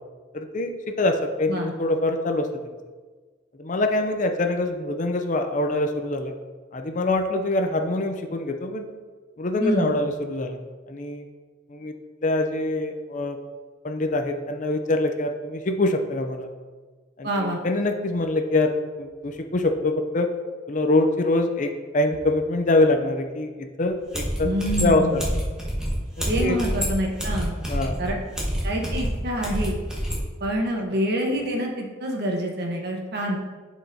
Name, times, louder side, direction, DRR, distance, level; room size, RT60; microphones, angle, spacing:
voice 1, 0.3-2.5 3.6-6.3 6.7-8.8 9.4-10.6 10.9-11.2 11.7-11.9 12.2-13.4 13.8-16.5 17.2-20.3 20.7-24.5 24.8-25.2 26.4-26.6 27.6-28.0, left 2 dB, 40° left, 6 dB, 0.5 m, -24 dB
voice 2, 9.6-9.9 17.2-17.6 24.4-25.3 26.2-27.5 28.0-28.1 28.6-29.8 30.4-33.4, equal, 55° right, 0 dB, 1.2 m, -26 dB
sound 1, 23.8-23.9 24.1-30.2, equal, 5° right, 1.2 m, -27 dB
10.5 x 4.7 x 2.8 m, 1.4 s
head